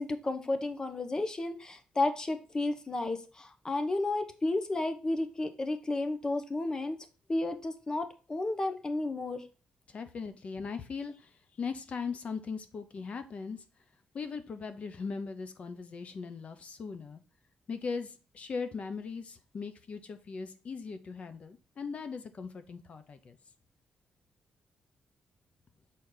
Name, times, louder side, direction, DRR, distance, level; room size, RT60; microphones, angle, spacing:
voice 1, 0.0-7.0 7.3-9.4, left 2 dB, 25° left, 1.0 m, -32 dB
voice 2, 9.9-11.3 11.6-13.6 14.1-17.2 17.7-23.4, left 5 dB, 50° left, 0.9 m, -39 dB
6.6 x 4.2 x 3.9 m
cardioid pair, 105°, 3 cm